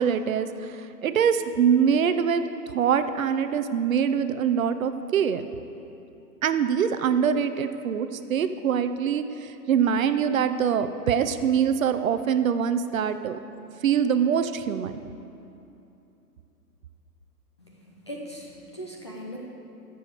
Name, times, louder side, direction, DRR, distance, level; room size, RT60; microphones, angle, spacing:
voice 1, 0.0-2.4 2.7-5.5 6.4-13.4 13.8-15.0, right 7 dB, 55° right, 10 dB, 0.7 m, -24 dB
voice 2, 17.6-19.4, equal, 20° left, -2 dB, 0.5 m, -40 dB
16.0 x 7.0 x 4.9 m, 2.7 s
hypercardioid pair, 150°, 48 cm